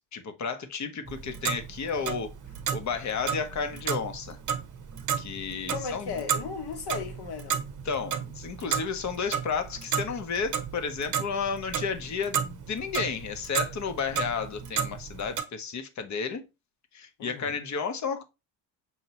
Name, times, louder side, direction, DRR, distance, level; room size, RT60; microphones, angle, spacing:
voice 1, 0.0-2.3 2.7-4.4 5.2-6.1 7.8-16.5 16.9-18.2, left 5 dB, 35° left, 0.8 m, -32 dB
Clock, 1.1-15.4, right 8 dB, 40° right, 0.8 m, -33 dB
voice 2, 5.7-7.6 17.2-17.6, left 6 dB, 55° left, 1.1 m, -36 dB
5.6 x 2.8 x 2.9 m
supercardioid pair, 90°, 47 cm